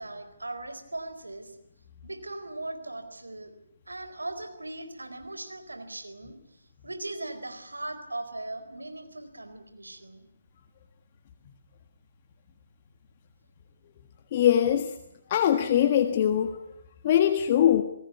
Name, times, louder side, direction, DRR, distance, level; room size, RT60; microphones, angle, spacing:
voice 1, 0.0-1.5 2.0-3.5 3.9-6.4 6.8-10.3, right 2 dB, 85° right, 9 dB, 4.4 m, -39 dB
voice 2, 14.3-14.9 15.3-16.6 17.0-17.8, left 10 dB, 35° left, 7 dB, 1.6 m, -22 dB
28.0 x 18.5 x 9.7 m, 0.79 s
figure-of-eight pair, 145°, 0 cm